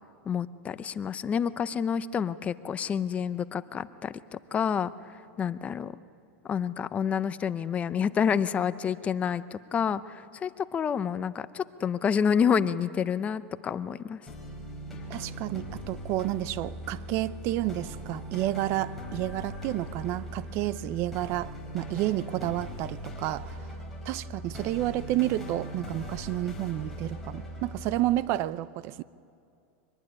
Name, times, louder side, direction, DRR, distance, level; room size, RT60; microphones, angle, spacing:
voice 1, 0.3-6.0 6.4-14.2, left 7 dB, 20° left, 0.6 m, -29 dB
sound 1, 14.3-28.0, equal, 5° left, 4.9 m, -40 dB
voice 2, 15.1-23.6 24.0-29.0, right 15 dB, 45° right, 0.6 m, -30 dB
24.5 x 20.0 x 9.9 m
supercardioid pair, 145°, 6 cm